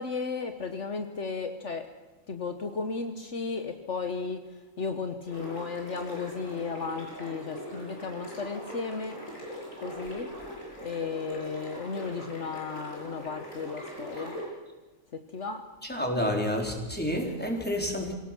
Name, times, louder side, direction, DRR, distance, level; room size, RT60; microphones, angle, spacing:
voice 1, 0.0-1.9 2.3-4.4 4.8-9.2 9.8-10.3 10.8-14.3 15.1-15.6, left 4 dB, 60° left, 7 dB, 1.5 m, -34 dB
sound 1, 5.3-14.5, equal, 80° left, 7.8 m, -41 dB
voice 2, 15.9-18.1, equal, 5° left, 1 dB, 3.9 m, -29 dB
26.0 x 17.5 x 6.1 m, 1.2 s
omnidirectional pair, 1.4 m